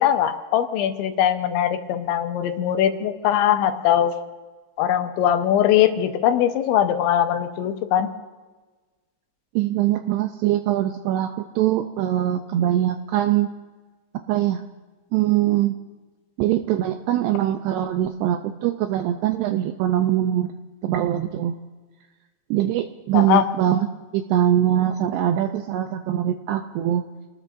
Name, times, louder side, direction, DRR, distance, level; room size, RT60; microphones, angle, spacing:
voice 1, 0.0-4.2 4.8-8.1 23.1-23.5, left 10 dB, 80° left, 7 dB, 3.2 m, -21 dB
voice 2, 9.6-13.5 14.3-14.6 15.1-15.8 16.4-20.6 20.8-21.6 22.5-23.9 24.1-27.0, right 12 dB, 80° right, 7 dB, 2.4 m, -22 dB
28.5 x 19.0 x 2.6 m, 1.3 s
omnidirectional pair, 5.4 m